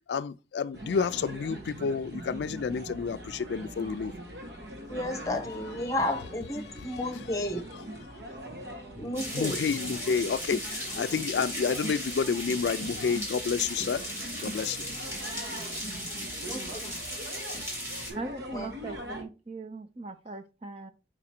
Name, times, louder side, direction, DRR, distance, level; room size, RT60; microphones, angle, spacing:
voice 1, 0.1-4.1 6.7-6.9 9.3-14.0 14.4-14.8, left 6 dB, 80° left, 0.3 m, -30 dB
sound 1, 0.7-19.2, right 1 dB, 75° right, 1.3 m, -42 dB
voice 2, 4.9-7.7 9.0-9.6 16.4-16.8 18.5-18.7, left 1 dB, 20° left, 0.9 m, -32 dB
sound 2, 9.1-18.1, equal, 15° right, 2.2 m, -37 dB
voice 3, 18.1-20.9, right 3 dB, 35° right, 0.6 m, -40 dB
5.0 x 4.9 x 4.3 m
head